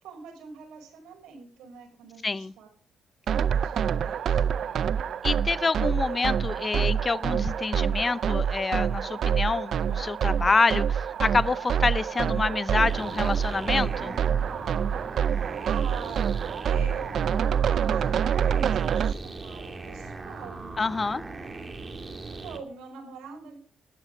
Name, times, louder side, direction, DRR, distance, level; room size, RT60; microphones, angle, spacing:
voice 1, 0.0-2.7 3.3-5.2 6.7-6.9 13.8-14.5 15.3-15.4 15.6-17.1 17.4-20.8 22.0-23.6, right 6 dB, 85° right, 5.2 m, -43 dB
voice 2, 2.2-2.5 5.2-14.1 20.8-21.2, left 4 dB, 30° left, 0.6 m, -27 dB
sound 1, 3.3-19.1, right 8 dB, 60° right, 0.5 m, -26 dB
sound 2, 12.8-22.6, right 3 dB, 30° right, 2.2 m, -39 dB
13.0 x 11.5 x 5.1 m
cardioid pair, 90°, 0 cm